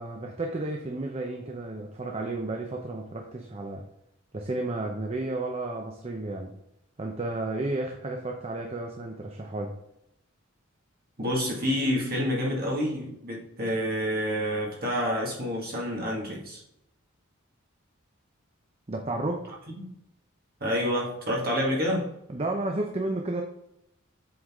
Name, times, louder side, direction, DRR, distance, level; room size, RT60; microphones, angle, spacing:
voice 1, 0.0-3.9 4.3-6.5 7.0-9.8 18.9-19.5 22.3-23.4, right 2 dB, 30° right, 0.7 m, -32 dB
voice 2, 11.2-16.6 19.8-19.9 20.6-22.1, equal, 50° right, 2.0 m, -28 dB
7.8 x 4.0 x 3.7 m
head